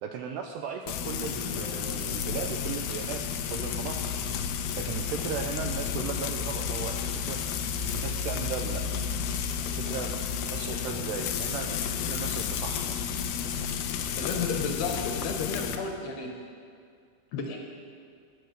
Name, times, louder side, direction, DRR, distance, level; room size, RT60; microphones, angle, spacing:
voice 1, 0.0-4.0 4.8-8.8 9.7-13.1, right 7 dB, 80° right, 4 dB, 2.4 m, -37 dB
Frying (food), 0.9-15.8, left 7 dB, 85° left, 2.2 m, -32 dB
voice 2, 14.1-16.3 17.3-17.6, left 4 dB, 70° left, 2 dB, 2.7 m, -32 dB
17.0 x 6.8 x 6.5 m, 2.2 s
omnidirectional pair, 5.3 m